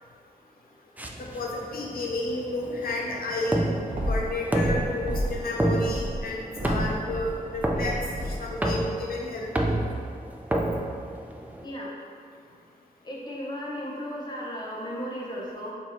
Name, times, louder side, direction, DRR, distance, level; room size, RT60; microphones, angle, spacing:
sound 1, 1.0-11.6, right 1 dB, 10° right, 0.3 m, -30 dB
voice 1, 1.2-3.6 4.1-8.0 8.2-9.8, left 1 dB, 75° left, -2 dB, 0.6 m, -31 dB
sound 2, 3.9-5.5 5.8-8.6, equal, 40° right, 0.7 m, -32 dB
voice 2, 11.6-11.9 13.0-15.7, equal, 30° left, -3 dB, 0.7 m, -35 dB
4.5 x 2.6 x 4.3 m, 2.3 s
wide cardioid pair, 125°, 15 cm